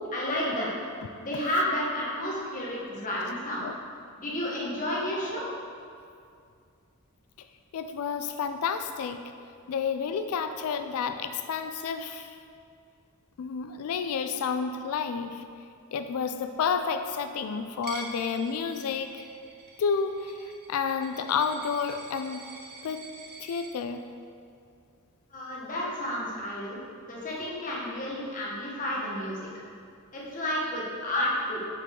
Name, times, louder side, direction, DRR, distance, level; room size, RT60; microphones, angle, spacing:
voice 1, 0.1-0.8 1.2-3.6 4.2-5.5 25.3-26.8 27.1-29.5 30.1-31.6, left 1 dB, 40° left, -5 dB, 1.3 m, -31 dB
voice 2, 7.7-9.3 9.7-12.4 13.4-15.4 15.9-19.2 19.8-20.4 20.7-22.5 22.8-23.1 23.4-24.1, left 6 dB, 80° left, 8 dB, 0.3 m, -30 dB
Coin (dropping), 17.8-23.7, right 3 dB, 45° right, 0.9 m, -46 dB
6.3 x 5.3 x 3.7 m, 2.3 s
head